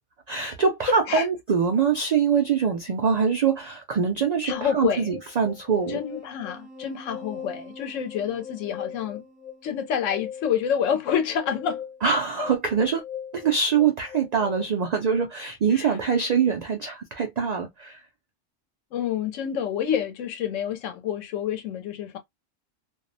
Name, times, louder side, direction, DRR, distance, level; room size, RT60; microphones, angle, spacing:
voice 1, 0.3-6.0 12.0-13.0 13.3-18.0, right 6 dB, 80° right, 0.3 m, -24 dB
voice 2, 0.9-1.3 4.4-5.1 5.9-9.2 9.6-11.8 12.4-12.5 15.7-16.0 18.9-22.2, left 8 dB, 85° left, 1.0 m, -28 dB
sound 1, 4.5-14.6, left 8 dB, ahead, 0.5 m, -40 dB
2.4 x 2.0 x 2.6 m
omnidirectional pair, 1.3 m